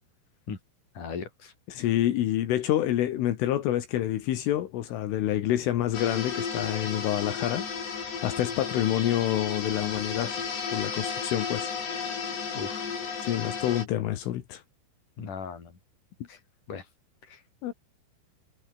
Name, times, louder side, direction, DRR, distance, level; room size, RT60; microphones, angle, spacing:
voice 1, 1.0-1.5 12.5-12.8 15.2-15.7 16.3-16.4 16.7-16.8 17.3-17.4, left 6 dB, 40° left, 5.9 m, -37 dB
voice 2, 1.7-10.4 10.7-11.7 13.2-14.6 17.6-17.7, left 12 dB, 80° left, 4.4 m, -28 dB
sound 1, 5.9-13.8, left 6 dB, 60° left, 7.4 m, -33 dB
omnidirectional pair, 5.7 m